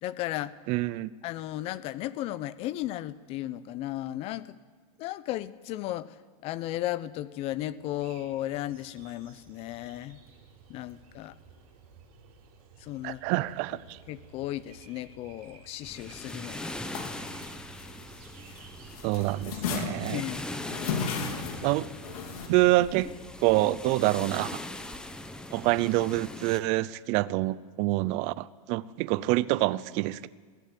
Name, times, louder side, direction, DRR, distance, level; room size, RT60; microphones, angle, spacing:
voice 1, 0.0-0.5 1.2-4.6 5.0-6.2 6.4-10.2 10.7-11.3 12.8-13.4 14.1-16.7 20.1-20.6, left 14 dB, 30° left, 17 dB, 0.8 m, -35 dB
voice 2, 0.7-1.1 13.0-14.0 19.0-20.2 21.6-21.9 22.5-23.1 23.4-24.6 25.5-30.3, right 18 dB, 35° right, 17 dB, 0.6 m, -26 dB
sound 1, 7.7-23.3, right 5 dB, 70° right, 7.0 m, -54 dB
sound 2, 15.8-26.6, left 1 dB, 5° left, 1.0 m, -41 dB
sound 3, 16.9-18.6 18.9-22.5, left 6 dB, 70° left, 3.8 m, -35 dB
23.0 x 15.5 x 8.6 m, 1.5 s
supercardioid pair, 160°, 19 cm